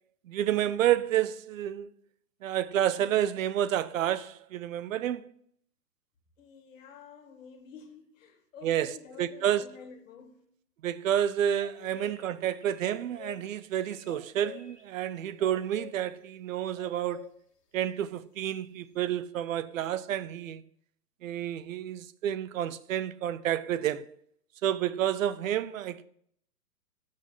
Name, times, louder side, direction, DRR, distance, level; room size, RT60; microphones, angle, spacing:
voice 1, 0.3-1.9 2.4-5.3 8.6-9.7 10.8-17.3 17.7-20.6 21.2-24.1 24.6-26.0, right 11 dB, 55° right, 0.6 m, -29 dB
voice 2, 6.4-10.5 11.8-11.9, left 6 dB, 55° left, 2.0 m, -50 dB
sound 1, 11.6-12.3 12.6-13.5 13.8-14.8 15.4-15.9 16.8-17.3, left 9 dB, 80° left, 1.7 m, -47 dB
6.4 x 6.2 x 5.4 m
hypercardioid pair, 130°, 48 cm